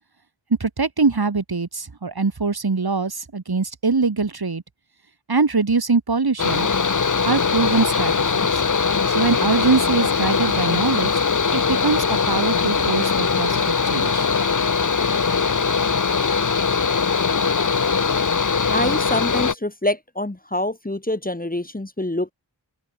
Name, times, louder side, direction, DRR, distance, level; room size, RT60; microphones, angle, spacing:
voice 1, 0.6-4.6 5.3-6.7 7.3-8.6 9.1-11.3 11.5-14.3, right 4 dB, 55° right, 2.9 m, -23 dB
Mechanical fan, 6.4-19.5, left 5 dB, 45° left, 1.0 m, -21 dB
voice 2, 18.7-22.3, left 1 dB, 20° left, 2.0 m, -25 dB
open air
wide cardioid pair, 55°, 44 cm